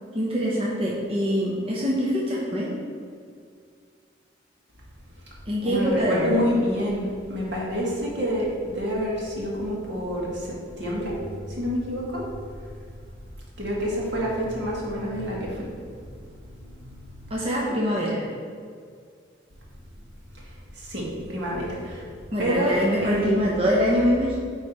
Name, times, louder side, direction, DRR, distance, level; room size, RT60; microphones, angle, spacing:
voice 1, 0.1-2.7 5.5-6.4 17.3-18.3 22.3-24.4, equal, 30° right, -5 dB, 0.9 m, -24 dB
voice 2, 5.6-11.2 11.6-12.2 13.6-15.7 16.8-17.3 20.7-22.1 22.4-23.5, equal, 75° right, -4 dB, 1.7 m, -27 dB
9.2 x 3.3 x 4.3 m, 2.2 s
head